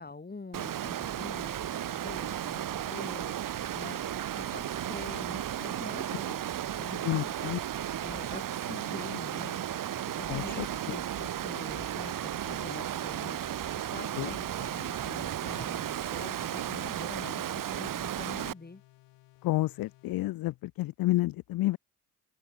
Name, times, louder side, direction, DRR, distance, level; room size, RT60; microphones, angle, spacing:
voice 1, 0.0-3.3 3.8-6.4 6.8-7.3 8.0-9.6 10.2-13.6 13.9-18.8, left 3 dB, 20° left, 4.9 m, -45 dB
Water, 0.5-18.5, right 11 dB, 50° right, 1.2 m, -34 dB
sound 1, 0.7-20.3, left 18 dB, 75° left, 7.9 m, -60 dB
voice 2, 7.0-7.6 10.3-11.0 14.2-14.3 19.4-21.8, left 17 dB, 55° left, 0.6 m, -30 dB
open air
supercardioid pair, 65°, 43 cm